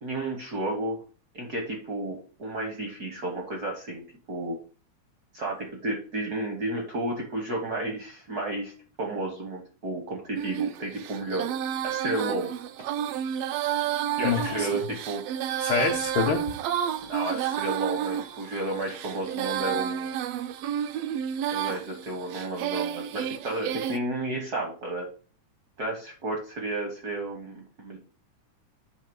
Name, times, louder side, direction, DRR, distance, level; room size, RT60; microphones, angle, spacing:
voice 1, 0.0-1.0 1.3-4.6 5.3-8.7 9.0-11.5 11.8-12.5 14.2-15.2 17.0-20.2 21.5-25.1 25.8-28.0, right 2 dB, 70° right, 1 dB, 0.9 m, -32 dB
Female singing, 10.4-24.0, right 10 dB, 85° right, 1.3 m, -31 dB
voice 2, 14.2-14.7 15.6-16.4, left 6 dB, 85° left, 1 dB, 1.1 m, -26 dB
9.3 x 3.2 x 5.2 m, 0.39 s
omnidirectional pair, 3.4 m